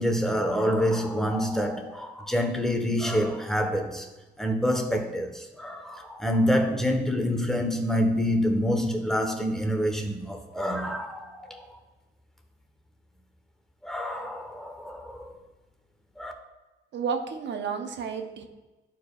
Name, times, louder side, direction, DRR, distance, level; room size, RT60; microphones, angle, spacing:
voice 1, 0.0-4.1 4.4-11.7 13.8-15.3 16.2-16.3, equal, ahead, 1.1 m, -27 dB
voice 2, 16.9-18.4, right 6 dB, 65° right, 0.9 m, -31 dB
11.5 x 4.6 x 2.4 m
cardioid pair, 90°, 20 cm